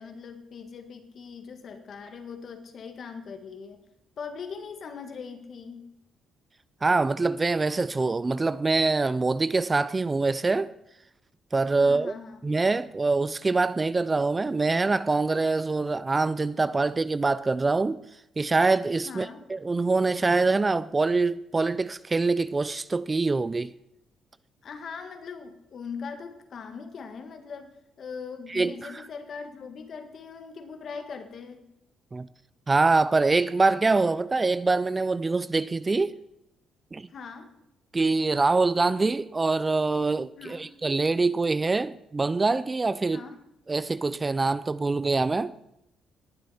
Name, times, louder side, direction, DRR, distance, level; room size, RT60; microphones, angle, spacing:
voice 1, 0.0-3.8 4.2-5.9 11.8-12.4 19.0-19.4 24.6-31.7 37.1-37.5 40.4-40.7 43.1-43.4, left 5 dB, 55° left, 1.6 m, -40 dB
voice 2, 6.8-10.7 11.5-12.1 12.4-18.0 18.4-23.7 28.5-28.9 32.1-32.3 32.7-36.2 36.9-37.1 37.9-43.2 43.7-45.5, right 3 dB, 25° right, 0.4 m, -24 dB
19.5 x 7.7 x 4.2 m
cardioid pair, 90°, 0 cm